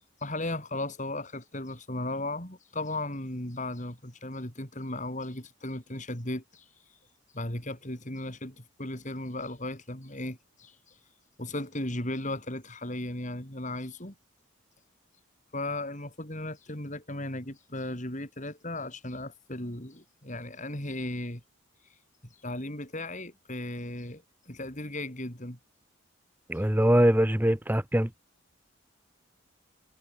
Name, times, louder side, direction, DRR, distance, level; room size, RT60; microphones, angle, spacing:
voice 1, 0.2-6.7 7.3-10.9 11.4-14.1 15.5-21.4 22.4-25.6, left 1 dB, 35° left, 5.6 m, -36 dB
voice 2, 26.5-28.1, right 1 dB, 10° right, 1.0 m, -23 dB
head